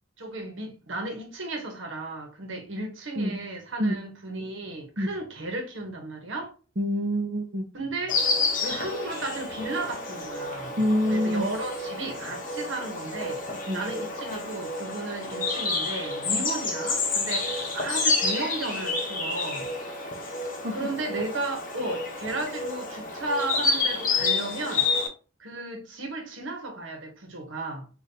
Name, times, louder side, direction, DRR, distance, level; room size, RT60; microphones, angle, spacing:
voice 1, 0.2-6.5 7.7-8.2 8.6-10.8 11.1-13.4 13.7-19.7 20.7-24.9 25.4-27.9, right 2 dB, 70° right, 1.1 m, -34 dB
voice 2, 6.8-7.6 10.8-11.5 13.7-13.8 16.3-16.4 20.6-20.8, equal, 40° right, 0.7 m, -26 dB
Insect, 8.1-25.1, left 3 dB, 45° left, 1.0 m, -29 dB
5.2 x 2.6 x 2.7 m
head